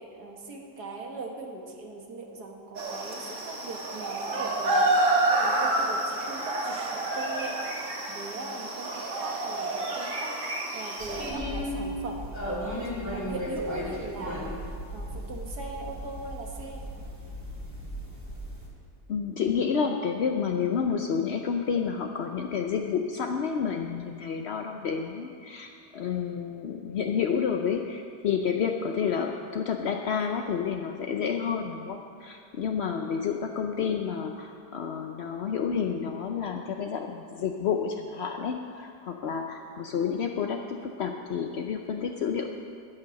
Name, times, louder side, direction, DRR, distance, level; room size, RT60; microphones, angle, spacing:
voice 1, 0.0-7.6 8.1-10.3 10.7-12.6 13.1-14.5 14.9-16.8, right 2 dB, 65° right, 1 dB, 2.1 m, -40 dB
sound 1, 2.7-11.3, right 2 dB, 45° right, 1.9 m, -28 dB
sound 2, 11.0-18.7, equal, 10° right, 2.2 m, -35 dB
voice 2, 19.1-42.5, left 6 dB, 65° left, 4 dB, 0.6 m, -30 dB
13.0 x 9.7 x 6.4 m, 2.4 s
omnidirectional pair, 1.8 m